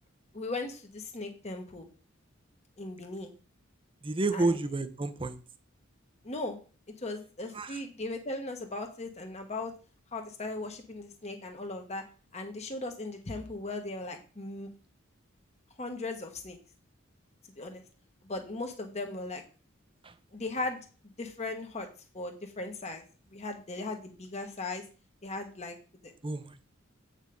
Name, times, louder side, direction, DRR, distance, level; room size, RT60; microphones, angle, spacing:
voice 1, 0.3-1.9 2.8-3.3 4.3-4.6 6.2-6.6 7.0-9.7 10.1-12.0 12.3-14.7 15.8-16.6 17.5-17.8 18.2-19.4 20.3-20.8 21.2-21.9 22.1-23.0 23.3-24.8 25.2-25.8 26.0-26.1, left 2 dB, 35° left, 4 dB, 1.3 m, -37 dB
voice 2, 4.0-5.4 7.5-7.8 20.0-20.1 26.2-26.7, right 2 dB, 25° right, 11 dB, 0.7 m, -31 dB
8.3 x 5.2 x 5.2 m, 0.35 s
head